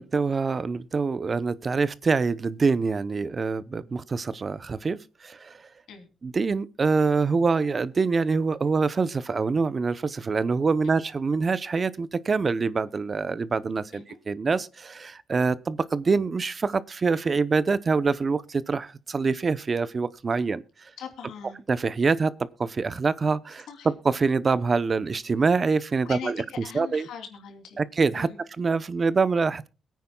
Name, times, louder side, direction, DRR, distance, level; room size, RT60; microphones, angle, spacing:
voice 1, 0.0-5.0 5.2-5.5 6.2-20.6 21.7-22.3 22.6-23.7 24.0-26.3 26.7-27.1 27.8-28.3 28.6-29.7, right 4 dB, 35° right, 0.7 m, -25 dB
voice 2, 21.0-21.6 23.7-23.9 26.0-27.8 28.1-28.4, left 7 dB, 85° left, 3.0 m, -41 dB
22.5 x 9.3 x 2.3 m
cardioid pair, 95°, 0 cm